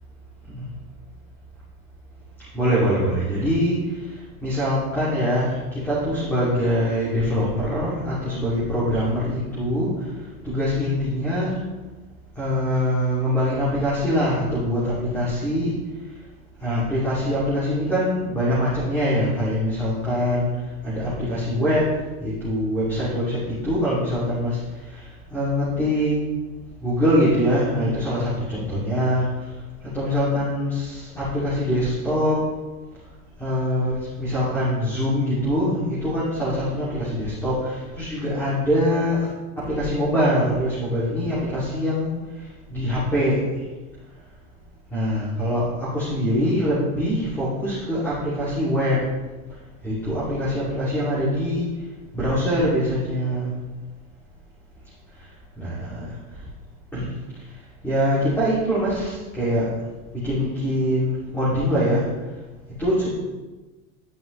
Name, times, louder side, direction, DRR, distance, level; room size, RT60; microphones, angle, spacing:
voice 1, 2.5-10.1 10.4-11.6 12.3-15.7 16.6-20.5 20.8-26.1 26.8-29.5 29.9-32.4 33.4-39.3 39.6-42.1 42.7-43.4 44.9-49.0 49.8-51.7 52.1-53.5 55.6-56.4 56.9-57.1 57.8-59.7 60.2-62.0 62.8-63.1, equal, 5° left, -10 dB, 2.7 m, -23 dB
11.5 x 5.4 x 3.3 m, 1.2 s
supercardioid pair, 130°, 43 cm